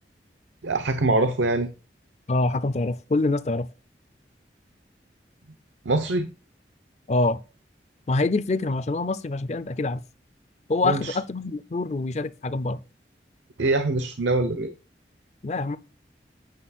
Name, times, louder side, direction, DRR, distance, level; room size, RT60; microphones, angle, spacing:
voice 1, 0.6-1.7 5.9-6.3 10.8-11.2 13.6-14.7, right 2 dB, 90° right, 0.8 m, -23 dB
voice 2, 2.3-3.7 7.1-7.4 8.1-10.0 10.7-12.8 15.4-15.8, left 2 dB, 40° left, 0.4 m, -25 dB
9.1 x 6.1 x 4.2 m
head